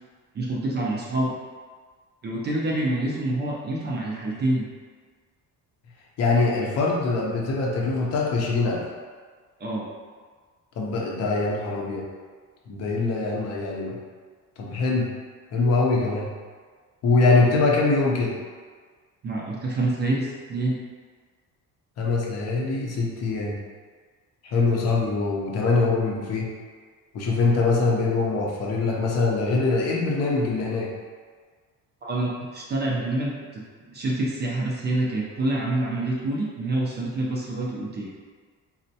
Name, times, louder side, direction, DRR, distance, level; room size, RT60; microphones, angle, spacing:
voice 1, 0.3-1.3 2.2-4.7 9.6-9.8 19.2-20.8 32.0-33.6 33.9-38.1, right 2 dB, 30° right, -4 dB, 0.4 m, -27 dB
voice 2, 6.2-8.8 10.8-12.1 12.7-14.0 14.6-15.1 15.5-16.3 17.0-18.3 22.0-23.6 24.4-26.5 27.1-30.9, left 3 dB, 45° left, -2 dB, 0.5 m, -23 dB
4.2 x 2.1 x 2.7 m, 1.5 s
cardioid pair, 165°, 34 cm